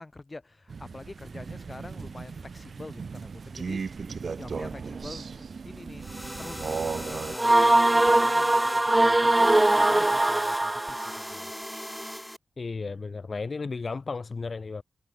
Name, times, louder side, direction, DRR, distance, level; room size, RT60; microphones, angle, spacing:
voice 1, 0.0-6.1 6.4-11.5, left 2 dB, 35° left, 5.4 m, -46 dB
Crow, 0.7-7.4, right 5 dB, 70° right, 0.8 m, -36 dB
sound 1, 6.0-12.4, equal, 5° left, 2.4 m, -39 dB
sound 2, 7.4-11.2, right 2 dB, 25° right, 0.5 m, -21 dB
voice 2, 12.6-14.8, left 4 dB, 60° left, 1.9 m, -34 dB
cardioid pair, 45°, 0 cm